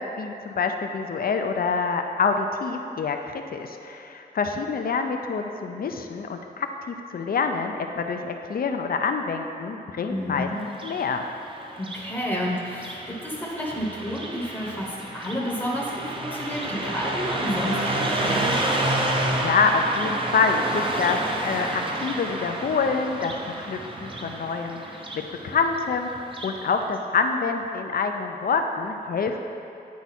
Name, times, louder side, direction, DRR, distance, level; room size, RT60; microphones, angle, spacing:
voice 1, 0.0-10.5 10.8-11.2 19.1-29.4, left 5 dB, 60° left, 5 dB, 0.5 m, -26 dB
voice 2, 10.1-10.6 11.8-18.6, equal, 10° left, -4 dB, 0.9 m, -30 dB
Car passing by, 10.6-26.6, right 1 dB, 30° right, 0.7 m, -30 dB
9.4 x 4.7 x 4.2 m, 2.7 s
wide cardioid pair, 140°, 17 cm